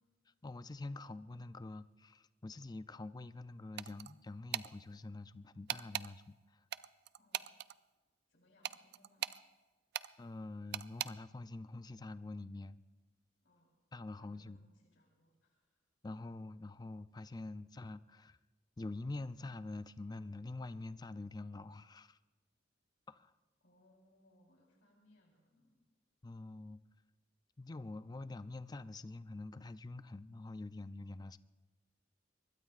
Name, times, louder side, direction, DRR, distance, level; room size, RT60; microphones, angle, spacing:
voice 1, 0.4-6.6 10.2-12.8 13.9-14.7 16.0-18.4 18.8-22.2 23.1-23.3 26.2-26.8 27.6-31.4, left 2 dB, 20° left, 0.4 m, -46 dB
sound 1, 3.8-4.1 4.5-4.7 5.7-6.1 6.7-7.7 8.6-9.4 9.9-10.1 10.7-11.1, right 12 dB, 55° right, 0.4 m, -39 dB
voice 2, 7.1-7.5 8.3-9.3 13.4-13.7 14.1-15.8 23.6-25.8, left 1 dB, 65° left, 3.8 m, -70 dB
24.0 x 21.5 x 2.4 m
head